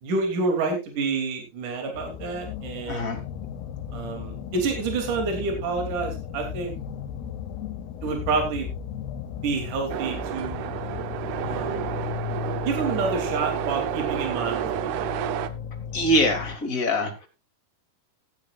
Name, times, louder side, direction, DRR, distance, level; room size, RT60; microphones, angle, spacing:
voice 1, 0.0-3.1 3.9-6.7 8.0-8.7 9.4-10.7 11.5-11.9 12.7-15.1, right 4 dB, 55° right, 3 dB, 4.2 m, -28 dB
sound 1, 2.0-16.6, left 8 dB, 90° left, 3.0 m, -36 dB
voice 2, 2.9-3.2 15.9-17.3, left 1 dB, 25° left, 3 dB, 2.5 m, -24 dB
sound 2, 3.2-10.0, left 7 dB, 70° left, 3.7 m, -40 dB
sound 3, 9.9-15.5, right 11 dB, 80° right, 2.8 m, -30 dB
16.0 x 12.0 x 2.5 m, 0.26 s
omnidirectional pair, 4.5 m